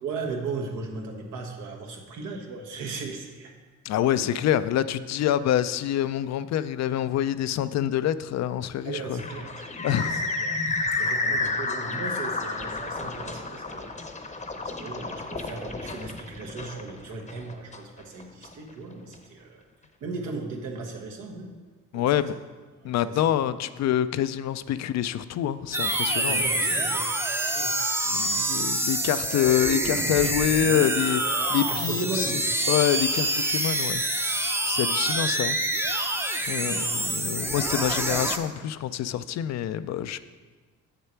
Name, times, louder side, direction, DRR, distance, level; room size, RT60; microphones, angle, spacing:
voice 1, 0.0-3.5 4.1-4.3 8.8-9.7 10.0-10.6 10.9-13.9 14.2-14.3 14.6-19.6 20.0-21.5 21.9-22.2 22.8-23.3 26.3-27.0 27.4-27.8 31.7-32.6 36.4-37.0, right 3 dB, 85° right, 1 dB, 1.3 m, -37 dB
voice 2, 3.8-9.2 9.8-10.1 21.9-22.3 22.8-26.4 28.1-31.2 31.5-32.3 32.7-34.0 34.6-35.6 35.9-40.2, left 11 dB, 60° left, 14 dB, 0.4 m, -26 dB
sound 1, 9.2-18.5, left 3 dB, 25° left, 0.8 m, -31 dB
sound 2, 25.7-38.4, right 1 dB, 10° right, 0.6 m, -26 dB
7.6 x 6.8 x 4.5 m, 1.4 s
cardioid pair, 90°, 30 cm